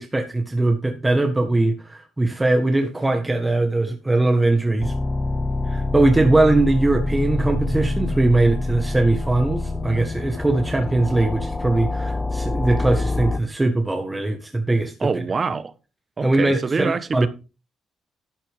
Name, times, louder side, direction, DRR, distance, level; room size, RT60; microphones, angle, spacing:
voice 1, 0.0-4.9 5.7-15.1 16.2-17.3, right 2 dB, 15° right, 1.6 m, -20 dB
sound 1, 4.8-13.4, left 2 dB, 25° left, 0.7 m, -26 dB
voice 2, 15.0-15.7 16.2-17.3, right 4 dB, 35° right, 1.1 m, -25 dB
12.0 x 8.9 x 3.6 m
cardioid pair, 90°, 0 cm